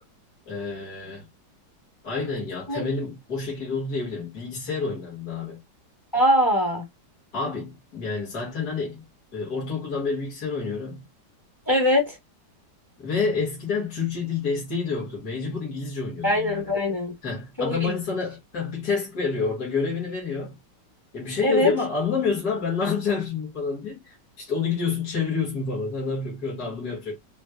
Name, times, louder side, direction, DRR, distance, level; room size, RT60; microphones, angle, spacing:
voice 1, 0.5-1.3 2.0-5.6 7.3-9.0 9.3-11.0 13.0-16.7 17.2-20.6 21.1-27.2, left 4 dB, 60° left, 2.1 m, -28 dB
voice 2, 6.1-6.8 11.7-12.2 16.2-17.1 17.6-17.9 21.4-21.7, left 1 dB, 15° left, 0.8 m, -22 dB
4.4 x 2.3 x 2.3 m
omnidirectional pair, 2.0 m